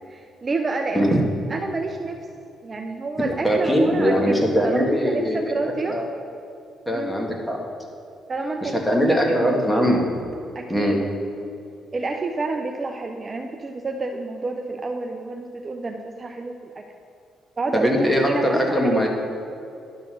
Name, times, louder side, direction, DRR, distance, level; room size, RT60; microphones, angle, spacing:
voice 1, 0.1-1.2 1.5-2.2 2.6-4.3 4.6-6.0 6.9-7.1 8.3-8.8 9.1-9.9 10.5-11.0 11.9-16.8 17.6-19.1, right 3 dB, 35° right, 4 dB, 0.5 m, -28 dB
voice 2, 3.4-5.5 5.9-6.1 6.9-7.6 8.6-10.2 10.7-11.0 17.7-19.1, equal, 5° left, 0 dB, 1.6 m, -21 dB
11.0 x 4.0 x 6.3 m, 2.6 s
cardioid pair, 90°, 0 cm